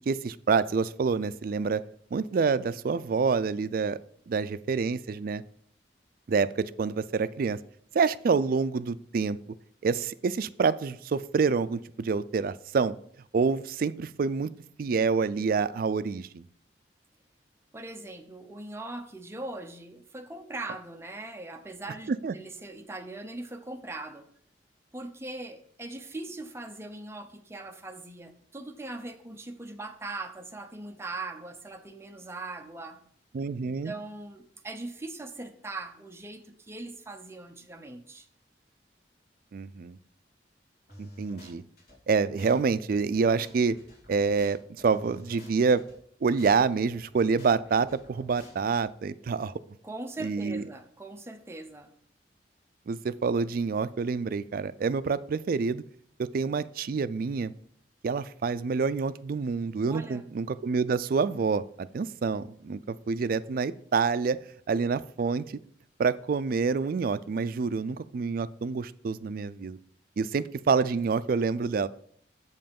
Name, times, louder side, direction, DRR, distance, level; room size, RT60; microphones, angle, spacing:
voice 1, 0.1-1.8 2.1-4.0 4.3-5.4 6.3-7.6 7.9-9.4 9.8-12.9 13.3-14.5 14.8-16.4 22.1-22.3 33.3-33.9 39.5-40.0 41.0-41.6 42.1-43.8 44.1-45.8 46.2-49.5 50.2-50.6 52.9-55.8 56.2-57.5 58.0-64.4 64.7-65.6 66.0-69.8 70.2-71.9, right 5 dB, 55° right, 0.3 m, -27 dB
voice 2, 17.7-24.3 24.9-33.0 33.6-38.3 49.8-51.9 59.9-60.2, right 2 dB, 15° right, 0.7 m, -40 dB
sound 1, 40.9-42.0 42.4-42.6 42.9-46.0 46.4-46.6 46.9-48.9, left 1 dB, 60° left, 3.0 m, -50 dB
7.7 x 5.5 x 5.3 m
head